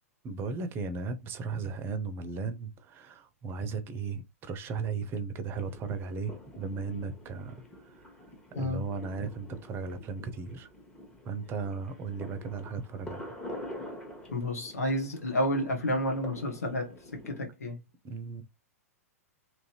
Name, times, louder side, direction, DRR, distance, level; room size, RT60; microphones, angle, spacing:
voice 1, 0.2-8.1 8.6-10.7 11.2-13.3 18.0-18.4, right 4 dB, 30° right, 0.6 m, -36 dB
sound 1, 5.6-17.4, equal, 10° left, 1.1 m, -46 dB
voice 2, 14.3-17.8, left 1 dB, 75° left, 0.9 m, -30 dB
3.0 x 2.6 x 2.8 m
figure-of-eight pair, 105°, 8 cm